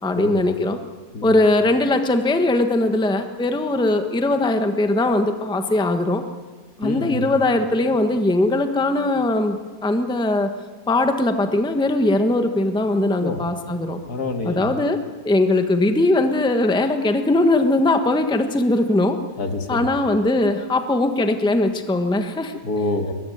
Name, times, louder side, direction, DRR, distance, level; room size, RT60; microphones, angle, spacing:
voice 1, 0.0-0.8 1.2-6.2 6.8-10.5 10.9-14.0 14.4-15.0 15.2-19.2 19.7-22.6, left 2 dB, 5° left, 6 dB, 1.2 m, -20 dB
voice 2, 6.8-7.3 13.2-13.4 14.1-14.7 19.4-19.9 22.6-23.1, left 3 dB, 65° left, 5 dB, 2.4 m, -26 dB
22.5 x 21.0 x 9.4 m, 1.4 s
omnidirectional pair, 1.8 m